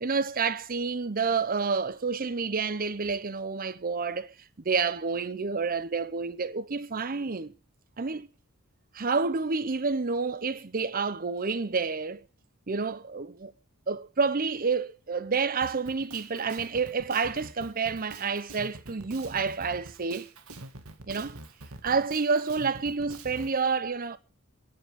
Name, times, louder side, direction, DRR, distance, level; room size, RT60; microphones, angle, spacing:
voice 1, 0.0-4.3 4.6-7.5 8.0-8.3 8.9-12.2 12.7-13.5 13.9-20.3 21.1-21.4 21.8-24.2, right 4 dB, 40° right, 0.7 m, -29 dB
Drum kit, 15.6-23.5, right 2 dB, 85° right, 2.1 m, -45 dB
28.0 x 9.4 x 3.7 m
head